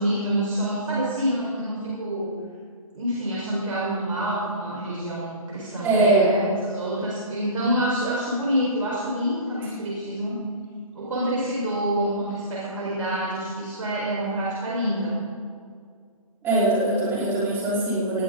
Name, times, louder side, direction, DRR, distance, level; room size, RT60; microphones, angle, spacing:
voice 1, 0.0-2.4 2.9-10.4 10.9-15.2, equal, 60° right, -5 dB, 4.7 m, -27 dB
voice 2, 5.8-6.3 16.4-18.2, right 2 dB, 10° right, -7 dB, 4.5 m, -21 dB
19.5 x 14.0 x 3.9 m, 2.1 s
hypercardioid pair, 155°, 19 cm